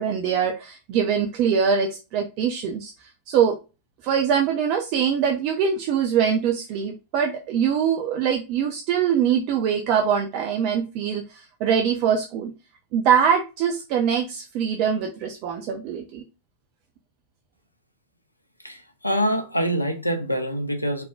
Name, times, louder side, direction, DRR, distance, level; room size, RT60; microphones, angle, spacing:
voice 1, 0.0-3.6 4.0-12.5 12.9-16.2, right 7 dB, 45° right, 0.7 m, -23 dB
voice 2, 18.6-21.0, equal, 85° left, 0.8 m, -25 dB
4.6 x 3.8 x 2.3 m
figure-of-eight pair, 90°, 0 cm